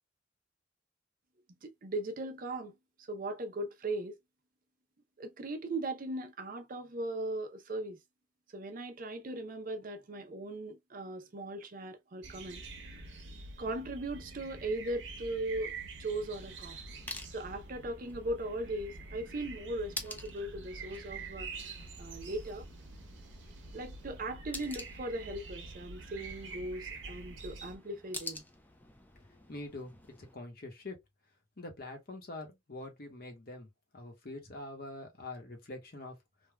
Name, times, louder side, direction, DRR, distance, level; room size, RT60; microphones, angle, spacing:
voice 1, 1.5-2.7 3.0-4.2 5.2-8.0 8.5-12.6 13.6-15.7 16.0-16.8 17.3-22.7 23.7-28.4, right 2 dB, 45° right, 0.5 m, -38 dB
sound 1, 12.2-27.8, right 3 dB, 80° right, 0.9 m, -47 dB
sound 2, 16.1-30.4, left 2 dB, 10° left, 0.4 m, -49 dB
voice 2, 29.3-31.0 31.6-33.7 33.9-36.2, left 2 dB, 50° left, 0.9 m, -45 dB
3.3 x 2.2 x 2.2 m
head